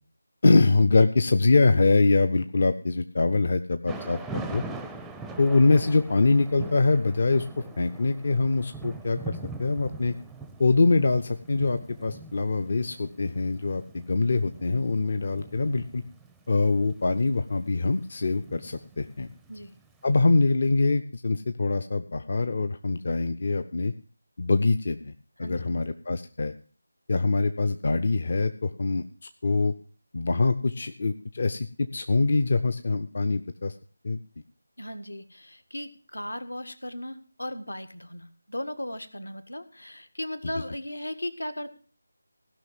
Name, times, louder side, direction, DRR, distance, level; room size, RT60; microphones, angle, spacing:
voice 1, 0.4-4.6 5.4-10.1 10.6-16.0 16.5-19.3 20.0-23.9 24.4-25.1 25.4-26.5 27.1-29.0 29.4-29.7 30.1-33.7 34.0-34.2, left 3 dB, 45° left, 10 dB, 0.6 m, -24 dB
Thunder / Rain, 3.9-19.9, right 3 dB, 5° right, 0.5 m, -42 dB
voice 2, 25.4-25.8 34.8-41.7, left 1 dB, 75° left, 11 dB, 1.6 m, -36 dB
16.5 x 5.9 x 7.4 m, 0.41 s
figure-of-eight pair, 160°, 0 cm